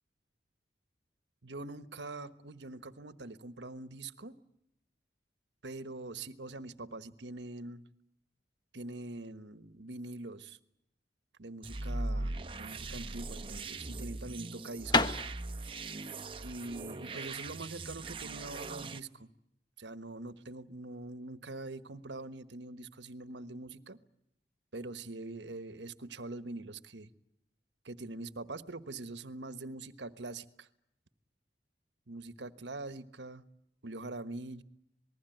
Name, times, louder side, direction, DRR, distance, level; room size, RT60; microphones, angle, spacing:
voice 1, 1.4-4.4 5.6-7.8 8.7-10.6 11.4-15.1 16.4-19.3 19.8-24.0 24.7-27.1 27.8-30.7 32.1-33.4 33.8-34.6, right 2 dB, 75° right, 13 dB, 1.3 m, -44 dB
sound 1, 11.6-19.0, right 2 dB, 30° right, 0.9 m, -40 dB
sound 2, 13.8-18.7, left 3 dB, 25° left, 1.2 m, -35 dB
27.5 x 20.0 x 9.1 m, 0.83 s
head